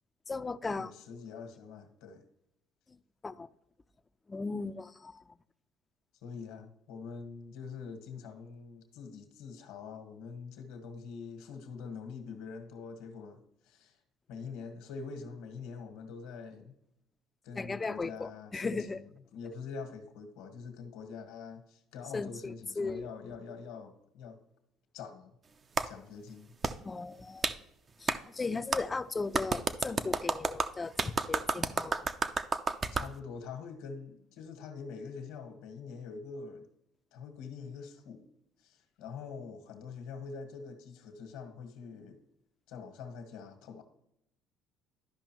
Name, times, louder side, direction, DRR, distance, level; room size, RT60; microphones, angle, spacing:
voice 1, 0.3-0.9 3.2-3.5 4.3-5.2 17.6-19.0 22.1-23.1 26.8-27.5 28.0-32.1, left 3 dB, 25° left, 0.4 m, -37 dB
voice 2, 0.8-2.2 6.2-14.0 14.3-16.8 17.4-24.4 24.9-25.3 25.8-26.5 32.9-36.7 37.1-38.3 38.6-42.2 42.7-43.8, left 5 dB, 80° left, 1.4 m, -45 dB
Clapping, 25.8-25.9 26.6-26.7 27.4-27.6 28.1-28.2 28.7-28.8 29.3-33.1, right 4 dB, 35° right, 0.5 m, -30 dB
12.5 x 5.2 x 3.0 m
supercardioid pair, 75°, 0 cm